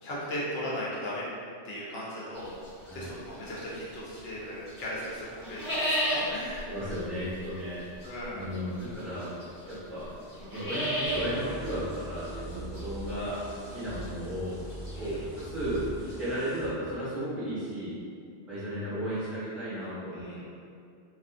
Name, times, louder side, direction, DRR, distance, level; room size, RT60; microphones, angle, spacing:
voice 1, 0.0-1.3 1.6-2.5 2.9-6.9 8.0-8.4 14.9-15.3 20.1-20.5, equal, 70° left, -7 dB, 0.9 m, -37 dB
sound 1, 2.3-4.4 4.7-16.1, equal, 20° left, 0.7 m, -35 dB
voice 2, 6.7-7.8 8.3-9.3 9.6-10.1 10.5-13.4 13.7-14.5 15.0-17.9 18.5-20.2, equal, ahead, -14 dB, 1.1 m, -34 dB
sound 2, 11.0-16.7, right 1 dB, 20° right, 1.5 m, -42 dB
2.5 x 2.4 x 2.4 m, 2.4 s
omnidirectional pair, 1.1 m